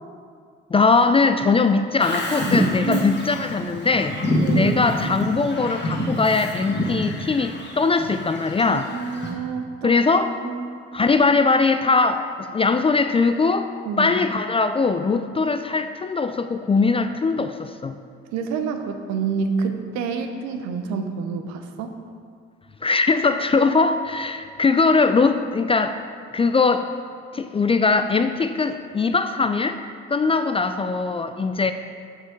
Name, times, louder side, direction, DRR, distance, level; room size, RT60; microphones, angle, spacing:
voice 1, 0.7-4.1 4.5-8.9 9.8-10.4 10.9-13.7 14.0-18.0 22.8-26.0 26.3-26.9 27.3-29.8 30.1-31.7, left 4 dB, 20° left, 9 dB, 0.4 m, -21 dB
Bird vocalization bird call bird song, 2.0-9.3, equal, 35° left, 1.6 m, -27 dB
voice 2, 4.4-4.8 8.7-9.9 10.4-10.8 13.9-14.2 18.3-22.0, right 5 dB, 65° right, 6 dB, 0.7 m, -28 dB
6.5 x 6.3 x 4.8 m, 2.1 s
hypercardioid pair, 45°, 30 cm